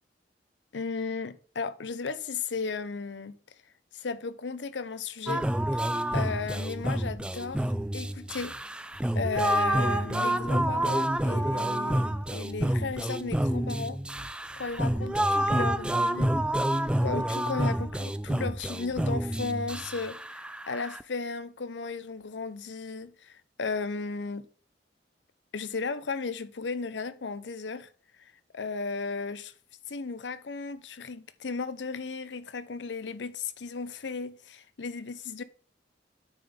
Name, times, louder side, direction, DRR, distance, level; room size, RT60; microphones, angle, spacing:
voice 1, 0.7-3.4 3.9-5.9 6.1-8.6 9.1-12.0 12.3-14.0 14.6-16.3 17.0-24.5 25.5-27.9 28.2-29.5 29.9-35.4, left 4 dB, 85° left, 0.7 m, -35 dB
sound 1, 5.3-21.0, right 1 dB, 5° right, 0.3 m, -28 dB
9.1 x 3.9 x 5.1 m
head